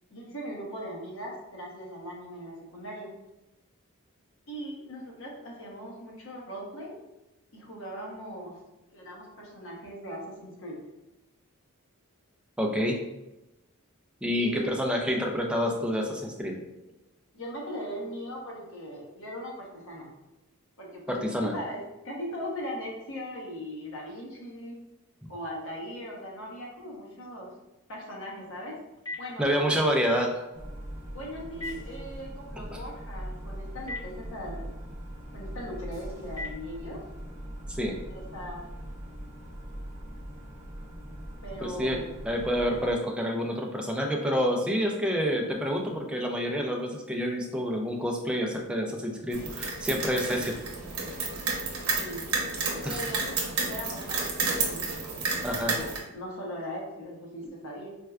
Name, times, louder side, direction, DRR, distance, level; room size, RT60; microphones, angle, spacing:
voice 1, 0.1-3.1 4.5-7.0 7.5-8.6 8.9-10.8 14.3-14.7 17.3-20.1 20.8-24.8 25.3-27.5 27.9-28.8 29.2-29.8 31.1-34.7 35.3-37.1 38.1-38.7 41.4-42.0 51.9-52.3 52.8-54.9 55.4-57.9, equal, 60° left, -3 dB, 0.9 m, -39 dB
voice 2, 12.6-13.0 14.2-16.5 21.1-21.5 29.4-30.4 32.7-32.8 37.8-38.0 41.6-42.0 42.2-50.5 52.8-53.0 55.4-55.7, equal, 5° right, 1 dB, 0.3 m, -28 dB
Telephone, 28.3-37.2, left 2 dB, 15° left, 0.8 m, -46 dB
sound 1, 30.5-42.9, equal, 30° right, 0.7 m, -41 dB
sound 2, 49.3-56.0, right 4 dB, 70° right, 0.7 m, -31 dB
4.4 x 2.2 x 2.3 m, 0.97 s
head